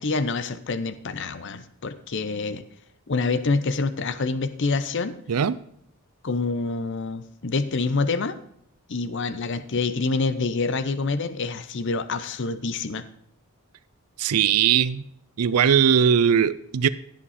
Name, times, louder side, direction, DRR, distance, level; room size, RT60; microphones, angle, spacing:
voice 1, 0.0-2.6 3.1-5.2 6.2-8.4 8.9-13.0, left 3 dB, 55° left, 11 dB, 0.7 m, -26 dB
voice 2, 14.2-15.0 15.4-16.9, right 8 dB, 90° right, 15 dB, 0.5 m, -19 dB
16.5 x 7.4 x 4.2 m, 0.72 s
head